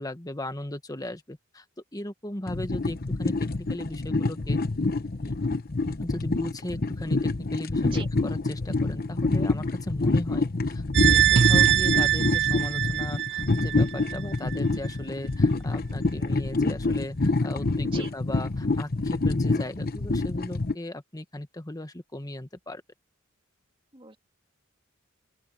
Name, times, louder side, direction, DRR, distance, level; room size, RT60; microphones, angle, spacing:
voice 1, 0.0-1.6 1.9-4.6 5.2-5.3 6.0-22.8, left 1 dB, 20° left, 1.4 m, -37 dB
sound 1, 2.5-20.7, left 2 dB, 45° left, 1.0 m, -27 dB
voice 2, 7.8-8.1 17.8-18.1 23.9-24.2, right 2 dB, 25° right, 3.3 m, -36 dB
sound 2, 10.9-14.2 14.5-14.6, right 9 dB, 55° right, 0.9 m, -22 dB
open air
head